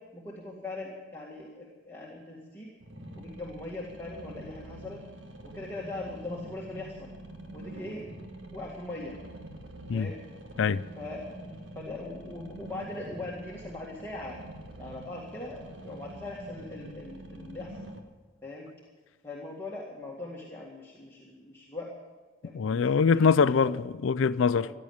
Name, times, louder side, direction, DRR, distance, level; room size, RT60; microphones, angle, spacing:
voice 1, 0.1-2.7 3.1-5.0 5.4-7.1 7.5-8.1 8.5-9.2 9.9-10.2 11.0-14.4 14.8-17.9 18.4-18.7 19.2-21.9 22.4-22.9 23.4-23.7 24.5-24.7, left 2 dB, 10° left, 1.9 m, -40 dB
sound 1, 2.8-18.0, right 1 dB, 65° right, 1.7 m, -45 dB
voice 2, 22.5-24.7, left 5 dB, 75° left, 0.4 m, -23 dB
15.5 x 11.0 x 8.6 m
head